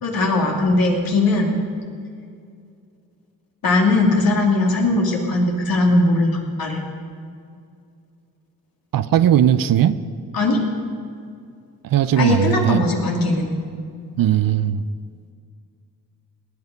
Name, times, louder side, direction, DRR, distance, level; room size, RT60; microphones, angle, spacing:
voice 1, 0.0-1.5 3.6-6.8 10.3-10.6 12.2-13.5, left 2 dB, 65° left, 0 dB, 2.9 m, -19 dB
voice 2, 8.9-10.0 11.8-12.8 14.2-14.8, right 10 dB, 65° right, 13 dB, 0.7 m, -18 dB
19.0 x 9.7 x 5.3 m, 2.3 s
cardioid pair, 75°, 37 cm